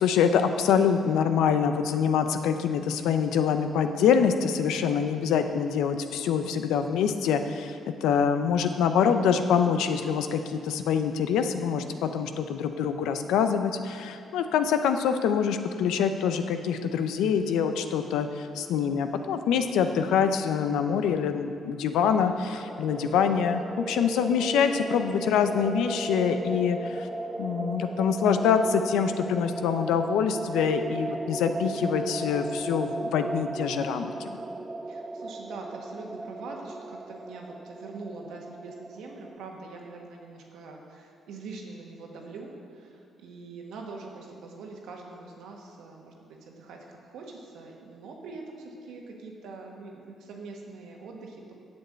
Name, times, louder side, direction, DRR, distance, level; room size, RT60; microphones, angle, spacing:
voice 1, 0.0-27.1 27.4-34.4, left 7 dB, 85° left, 8 dB, 0.6 m, -25 dB
sound 1, 22.4-39.3, right 2 dB, 15° right, 0.5 m, -36 dB
voice 2, 34.9-51.5, right 3 dB, 80° right, 0 dB, 1.5 m, -43 dB
7.6 x 7.0 x 8.0 m, 2.5 s
supercardioid pair, 70°, 0 cm